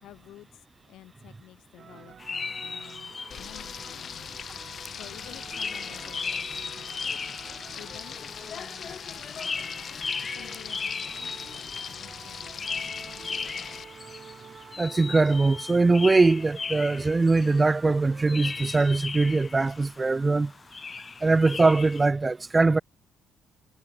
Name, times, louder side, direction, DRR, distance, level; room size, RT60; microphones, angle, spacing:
voice 1, 0.0-4.4 4.7-7.3 7.5-8.3 8.5-9.9 10.2-13.0, left 14 dB, 85° left, 4.8 m, -52 dB
sound 1, 1.8-18.6, right 7 dB, 50° right, 4.6 m, -49 dB
sound 2, 2.2-22.1, left 5 dB, 35° left, 1.7 m, -37 dB
Frying (food), 3.3-13.8, left 7 dB, 55° left, 2.9 m, -40 dB
voice 2, 14.8-20.5 21.2-22.8, right 3 dB, 25° right, 0.5 m, -22 dB
cardioid pair, 90°, 0 cm